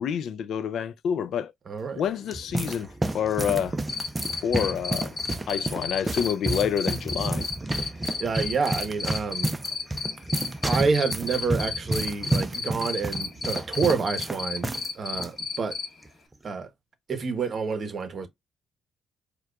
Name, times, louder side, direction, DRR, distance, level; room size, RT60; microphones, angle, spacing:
voice 1, 0.0-1.5 2.0-3.8 4.3-5.2 5.5-7.5, left 8 dB, 70° left, 0.4 m, -28 dB
voice 2, 1.7-2.0 8.2-9.5 10.6-14.7 14.9-15.8 16.4-16.7 17.1-18.3, right 5 dB, 45° right, 0.9 m, -28 dB
sound 1, 2.0-14.9 15.1-15.3 16.0-16.3, right 2 dB, 20° right, 0.5 m, -31 dB
Cricket, 3.9-15.9, left 5 dB, 40° left, 0.9 m, -31 dB
4.6 x 2.3 x 2.3 m
cardioid pair, 90°, 0 cm